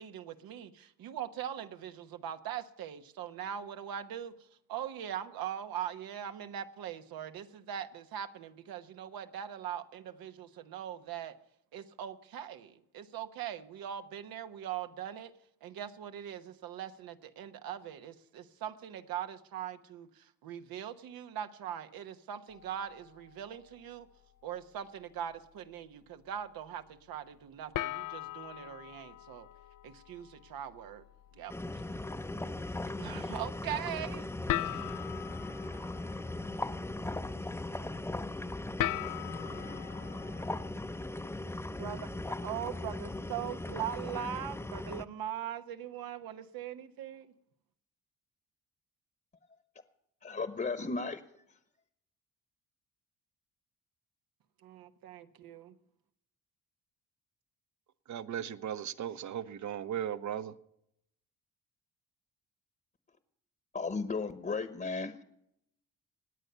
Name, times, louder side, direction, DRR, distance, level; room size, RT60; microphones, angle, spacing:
voice 1, 0.0-4.3 4.7-11.3 11.7-15.3 15.6-24.1 24.4-29.5 29.8-31.0 31.3-31.8 33.0-34.3 34.7-34.8 41.7-47.3 54.6-55.7, right 10 dB, 85° right, 8 dB, 1.1 m, -41 dB
sound 1, 22.5-24.0 24.4-24.8 25.3-25.4 27.7-40.7, left 14 dB, 65° left, 0.5 m, -41 dB
sound 2, 31.5-45.1, left 2 dB, 5° left, 0.6 m, -38 dB
voice 2, 50.2-51.2 63.7-65.2, left 4 dB, 25° left, 11 dB, 1.0 m, -35 dB
voice 3, 58.1-60.5, right 9 dB, 55° right, 14 dB, 0.9 m, -37 dB
17.5 x 9.6 x 6.8 m, 0.76 s
cardioid pair, 105°, 34 cm